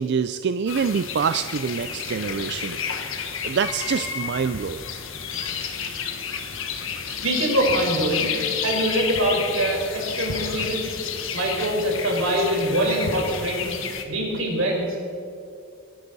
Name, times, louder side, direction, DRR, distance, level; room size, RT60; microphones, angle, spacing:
voice 1, 0.0-2.8 3.4-4.8, right 6 dB, 55° right, 11 dB, 0.4 m, -25 dB
sound 1, 0.7-14.0, left 6 dB, 70° left, 1.4 m, -30 dB
voice 2, 7.0-8.3 8.6-10.8 11.3-13.7 14.1-15.0, right 1 dB, 80° right, -1 dB, 4.5 m, -24 dB
22.5 x 11.5 x 4.1 m, 2.5 s
head